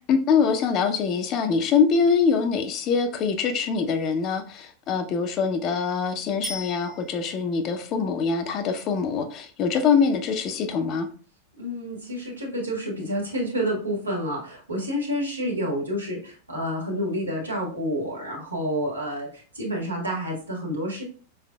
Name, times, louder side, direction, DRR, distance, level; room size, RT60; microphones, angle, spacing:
voice 1, 0.1-11.1, left 5 dB, 35° left, 7 dB, 0.6 m, -24 dB
Bicycle bell, 6.4-7.6 16.6-16.7, equal, 15° right, 0.8 m, -38 dB
voice 2, 11.6-21.0, equal, 80° right, -3 dB, 1.5 m, -29 dB
4.7 x 3.4 x 2.2 m, 0.41 s
figure-of-eight pair, 90°, 0 cm